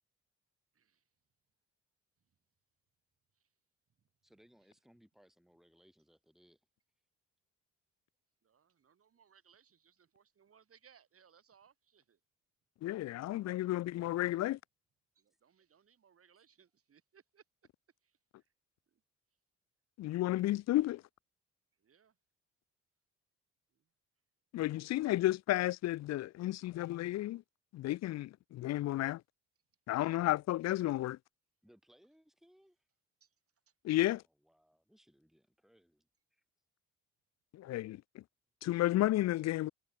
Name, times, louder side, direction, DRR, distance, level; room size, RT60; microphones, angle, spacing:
voice 1, 0.7-1.0 3.3-3.5 8.4-12.2 12.9-13.3 13.6-13.8 15.2-17.4 18.0-18.5 18.9-19.0 21.8-22.2 23.7-23.9 33.2-33.3 33.7-33.8, right 7 dB, 50° right, 4.0 m, -67 dB
voice 2, 4.2-6.7 31.6-32.9 34.0-36.4, equal, ahead, 6.1 m, -66 dB
voice 3, 12.8-14.6 20.0-21.0 24.5-27.4 27.7-29.2 29.9-31.2 33.8-34.2 37.5-38.0 38.6-39.7, left 15 dB, 60° left, 0.4 m, -32 dB
cardioid pair, 90°, 30 cm